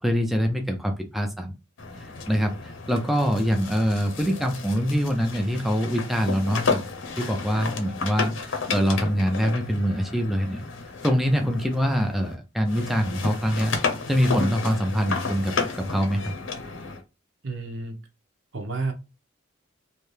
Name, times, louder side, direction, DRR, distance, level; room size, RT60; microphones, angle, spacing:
voice 1, 0.0-1.5 2.0-6.8 7.2-10.6 11.0-13.7 14.1-16.3, equal, ahead, 3 dB, 0.4 m, -24 dB
sound 1, 1.8-12.3 12.7-17.0, left 4 dB, 75° left, 0.8 m, -32 dB
voice 2, 17.4-17.9 18.5-18.9, right 3 dB, 70° right, 4 dB, 1.0 m, -30 dB
3.2 x 2.7 x 3.2 m, 0.27 s
head